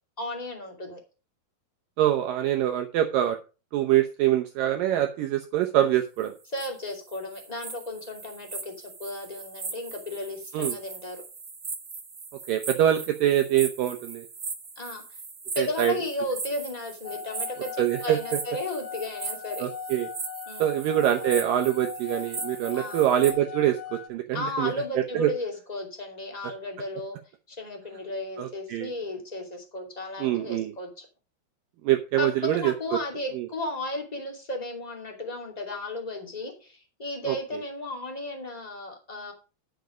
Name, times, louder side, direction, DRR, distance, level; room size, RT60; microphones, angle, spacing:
voice 1, 0.2-1.0 6.5-8.7 9.0-11.2 14.7-15.0 15.5-19.7 20.5-20.8 22.7-23.1 24.3-27.2 27.5-31.0 32.2-39.3, left 2 dB, 15° left, 2 dB, 1.7 m, -34 dB
voice 2, 2.0-3.4 3.7-6.3 10.5-10.8 12.5-14.3 15.6-15.9 17.8-18.2 19.6-20.1 20.6-25.3 28.4-28.9 30.2-30.7 31.8-32.7 33.3-33.5 37.3-37.4, right 12 dB, 75° right, 5 dB, 2.2 m, -24 dB
sound 1, 6.2-23.3, right 4 dB, 35° right, 1.6 m, -39 dB
sound 2, 17.0-24.1, left 7 dB, 75° left, 2.0 m, -39 dB
10.5 x 7.1 x 5.1 m, 0.32 s
omnidirectional pair, 4.6 m